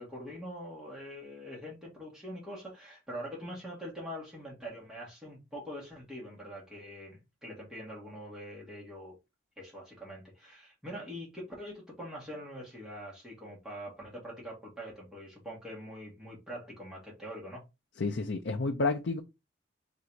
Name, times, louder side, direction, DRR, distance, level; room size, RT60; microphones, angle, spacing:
voice 1, 0.0-9.1 9.6-17.6, equal, 5° right, 1.6 m, -44 dB
voice 2, 18.0-19.2, left 3 dB, 80° left, 0.5 m, -30 dB
3.9 x 2.6 x 4.5 m
head